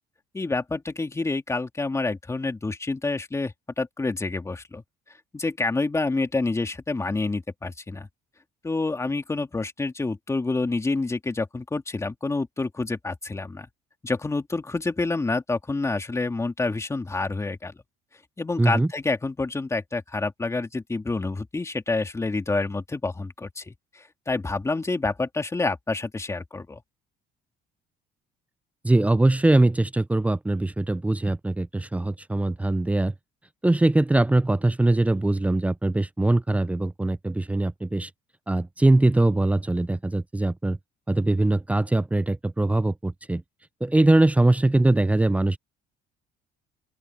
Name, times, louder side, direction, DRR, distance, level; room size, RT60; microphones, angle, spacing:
voice 1, 0.3-4.8 5.3-8.1 8.6-13.7 14.0-17.7 18.4-26.8, left 3 dB, 15° left, 2.5 m, -28 dB
voice 2, 18.6-18.9 28.8-33.1 33.6-38.1 38.5-40.8 41.1-43.4 43.8-45.6, right 2 dB, 10° right, 0.5 m, -22 dB
open air
cardioid pair, 110°, 17 cm